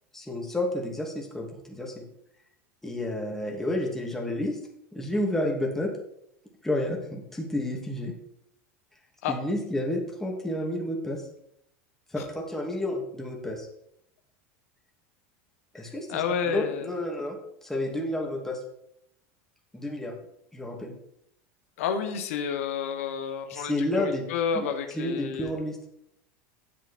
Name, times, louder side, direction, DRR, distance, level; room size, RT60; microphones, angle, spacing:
voice 1, 0.1-2.0 2.8-4.6 4.9-5.9 6.6-8.1 9.3-11.2 12.1-13.7 15.7-16.1 16.4-17.4 17.6-18.6 19.7-20.1 20.5-20.9 23.5-24.2 24.5-24.7 24.9-25.8, left 1 dB, 5° left, -1 dB, 2.6 m, -30 dB
voice 2, 16.1-16.9 21.8-25.5, left 7 dB, 80° left, 7 dB, 1.4 m, -30 dB
10.0 x 7.5 x 4.4 m, 0.75 s
supercardioid pair, 120°, 8 cm